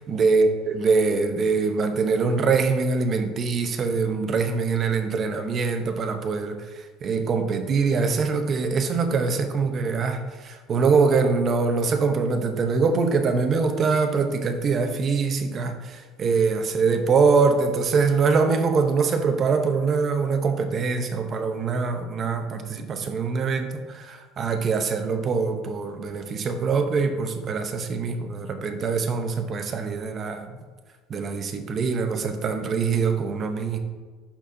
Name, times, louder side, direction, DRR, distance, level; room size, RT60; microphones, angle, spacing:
voice 1, 0.0-6.6 7.0-30.5 31.1-33.8, right 4 dB, 35° right, 7 dB, 0.7 m, -23 dB
11.0 x 4.3 x 2.7 m, 1.4 s
cardioid pair, 130°, 0 cm